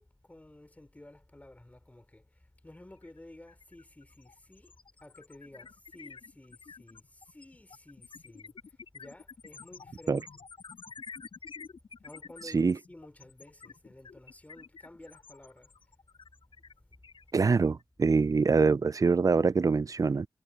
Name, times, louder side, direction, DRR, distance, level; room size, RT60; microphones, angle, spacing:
voice 1, 0.0-4.7 5.0-10.5 12.0-15.7, left 1 dB, 15° left, 3.4 m, -53 dB
sound 1, 3.0-3.2 3.5-17.8, left 5 dB, 70° left, 5.9 m, -50 dB
voice 2, 12.4-12.8 17.3-20.3, right 4 dB, 40° right, 0.4 m, -25 dB
wide cardioid pair, 95°, 9 cm